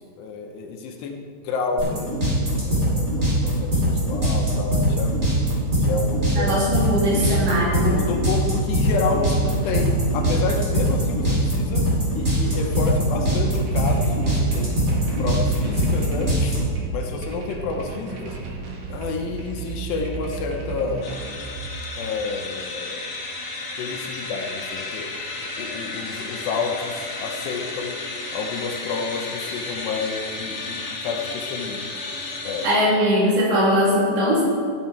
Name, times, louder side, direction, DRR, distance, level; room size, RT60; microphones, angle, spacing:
voice 1, 0.2-2.1 2.7-5.1 5.8-6.6 7.8-11.9 12.1-14.8 15.2-16.6 16.9-18.4 18.9-21.1 22.0-23.1 23.8-25.1 25.6-28.0 28.3-31.9 32.4-32.7, left 4 dB, 80° left, 2 dB, 2.9 m, -29 dB
sound 1, 1.8-16.6, equal, 15° right, 3.3 m, -21 dB
voice 2, 6.3-8.0 32.6-34.4, equal, 85° right, -6 dB, 5.4 m, -20 dB
sound 2, 7.6-22.5, right 5 dB, 60° right, 2.3 m, -35 dB
sound 3, 21.0-32.7, left 3 dB, 55° left, 1.5 m, -33 dB
14.0 x 9.5 x 4.4 m, 2.2 s
omnidirectional pair, 5.0 m